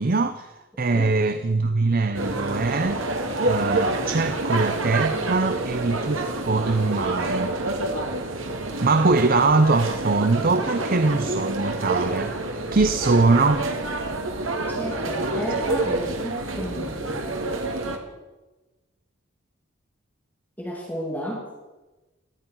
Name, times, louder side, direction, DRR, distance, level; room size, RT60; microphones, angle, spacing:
voice 1, 0.0-3.0 3.5-7.5 8.8-13.6, right 3 dB, 45° right, 11 dB, 0.7 m, -22 dB
sound 1, 2.1-18.0, right 2 dB, 85° right, 2.0 m, -27 dB
voice 2, 14.8-17.4 20.6-21.4, equal, 10° left, -3 dB, 2.7 m, -33 dB
18.0 x 13.0 x 5.6 m, 1.1 s
head